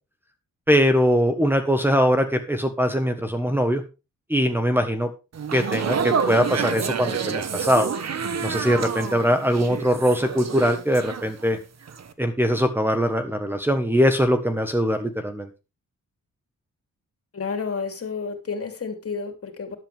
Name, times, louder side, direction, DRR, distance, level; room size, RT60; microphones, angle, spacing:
voice 1, 0.7-3.8 4.3-5.1 5.5-7.9 8.4-11.6 12.2-15.5, equal, 5° right, 4 dB, 1.4 m, -21 dB
sound 1, 5.3-11.6 11.9-12.1, right 6 dB, 55° right, 1.3 m, -28 dB
voice 2, 17.3-19.8, left 5 dB, 45° left, 5 dB, 3.2 m, -30 dB
13.0 x 11.0 x 3.6 m, 0.29 s
cardioid pair, 110°, 31 cm